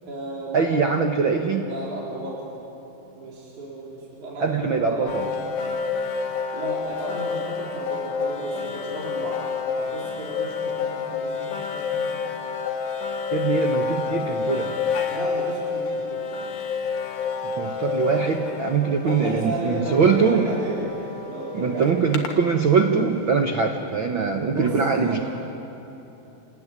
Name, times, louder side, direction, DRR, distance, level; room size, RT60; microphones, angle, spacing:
voice 1, 0.0-0.7 1.6-2.4 3.1-5.4 6.5-9.4 9.7-12.0 15.1-16.2 19.0-22.0 24.5-25.2, right 1 dB, 55° right, -5 dB, 5.3 m, -33 dB
voice 2, 0.5-1.7 4.4-5.2 13.3-14.8 17.4-20.5 21.5-25.2, right 5 dB, 70° right, 4 dB, 1.1 m, -22 dB
sound 1, 5.1-23.1, left 5 dB, 75° left, 3.3 m, -29 dB
29.0 x 19.5 x 9.7 m, 3.0 s
omnidirectional pair, 4.2 m